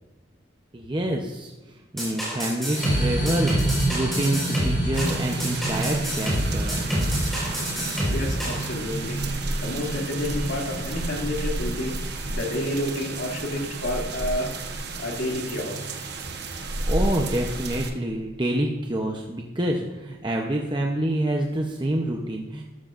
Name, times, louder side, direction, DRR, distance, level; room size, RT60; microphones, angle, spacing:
voice 1, 0.7-1.5 1.9-7.1 16.9-22.6, right 1 dB, 25° right, 1 dB, 0.7 m, -27 dB
sound 1, 2.0-8.6, equal, ahead, 4.4 m, -27 dB
sound 2, 2.7-17.8, right 2 dB, 40° left, 3.7 m, -32 dB
sound 3, 4.9-17.9, right 2 dB, 55° right, 1.1 m, -32 dB
voice 2, 8.1-9.2 9.6-12.0 12.3-16.3, left 1 dB, 75° left, -1 dB, 2.5 m, -30 dB
13.0 x 12.5 x 2.5 m, 1.1 s
head